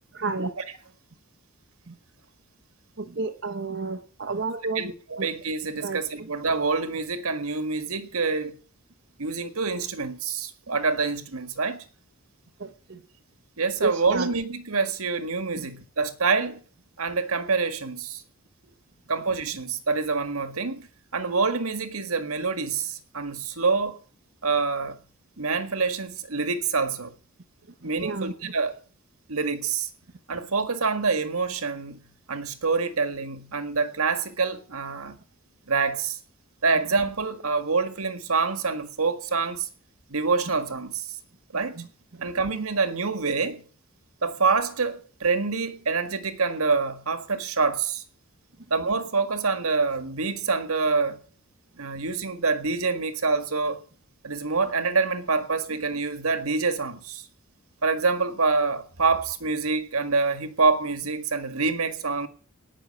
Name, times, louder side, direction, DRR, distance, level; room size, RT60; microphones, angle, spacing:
voice 1, 0.1-0.5 1.9-2.0 3.0-4.9 5.2-5.3 5.8-6.3 12.6-13.0 13.8-14.3 15.6-15.7 19.1-19.2 27.8-28.5 41.8-41.9 42.1-42.2, right 3 dB, 55° right, 1.0 m, -31 dB
voice 2, 4.7-8.6 9.2-11.8 13.6-16.6 17.0-18.2 19.1-20.9 21.1-24.0 24.4-25.0 25.4-27.1 27.8-28.7 29.3-29.9 30.3-35.2 35.7-36.2 36.6-39.7 40.1-41.1 41.5-41.8 42.2-43.6 44.2-48.0 48.7-51.2 51.8-53.8 54.2-57.2 57.8-62.3, right 4 dB, 80° right, 1.7 m, -26 dB
18.5 x 6.5 x 7.7 m
head